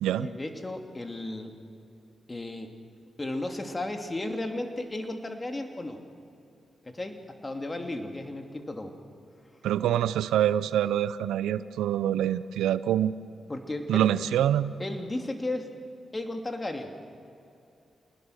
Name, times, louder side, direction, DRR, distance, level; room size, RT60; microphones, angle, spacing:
voice 1, 0.2-1.5 2.3-2.7 3.2-6.0 6.8-8.9 13.5-14.1 14.8-15.7 16.1-16.9, left 2 dB, 30° left, 5 dB, 2.8 m, -34 dB
voice 2, 9.6-13.1 13.9-14.8, right 11 dB, 85° right, 16 dB, 0.5 m, -25 dB
28.0 x 19.5 x 6.6 m, 2.6 s
supercardioid pair, 40°, 0 cm